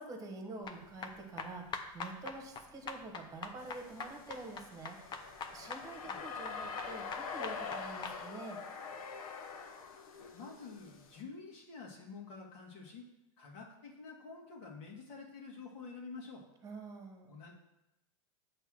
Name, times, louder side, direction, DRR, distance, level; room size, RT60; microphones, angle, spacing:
voice 1, 0.0-8.6 16.6-17.3, right 3 dB, 20° right, 4 dB, 1.4 m, -47 dB
sound 1, 0.6-8.2, left 5 dB, 25° left, 0.7 m, -44 dB
sound 2, 3.6-11.2, left 5 dB, 80° left, 0.9 m, -45 dB
voice 2, 10.3-13.1 13.4-16.5 17.3-17.5, left 4 dB, 60° left, -1 dB, 2.0 m, -49 dB
8.0 x 3.4 x 6.3 m, 0.93 s
supercardioid pair, 130°, 18 cm